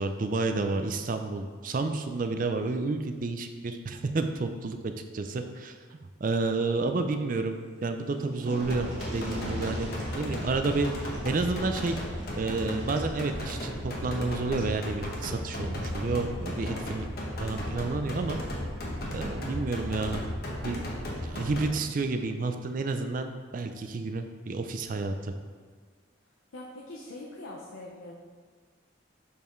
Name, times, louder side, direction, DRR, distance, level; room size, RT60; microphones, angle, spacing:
voice 1, 0.0-8.9 9.1-9.9 10.1-12.0 12.3-17.1 17.4-18.4 19.1-20.2 20.6-20.9 21.2-25.3, right 3 dB, 40° right, 7 dB, 0.4 m, -30 dB
sound 1, 7.7-7.8 8.0-14.8 16.1-16.2 16.6-16.7, equal, 65° right, 1.6 m, -44 dB
sound 2, 8.6-21.7, equal, 50° left, 1.1 m, -35 dB
voice 2, 26.5-28.1, left 1 dB, 80° left, -3 dB, 0.7 m, -42 dB
6.7 x 5.5 x 3.1 m, 1.5 s
head